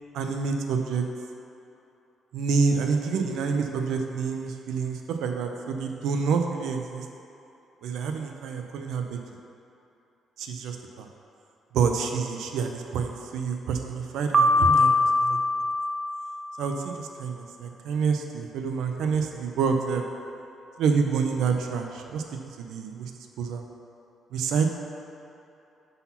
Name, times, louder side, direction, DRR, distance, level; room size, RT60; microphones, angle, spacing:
voice 1, 0.1-1.0 2.3-7.0 7.8-9.2 10.4-11.1 11.7-14.9 15.2-15.4 16.6-20.0 20.8-22.2 22.6-23.1 23.4-23.6 24.3-24.7, right 5 dB, 85° right, 4 dB, 0.6 m, -27 dB
Piano, 14.3-16.5, left 2 dB, 35° right, 0.4 m, -22 dB
5.8 x 4.0 x 5.6 m, 2.8 s
cardioid pair, 90°, 0 cm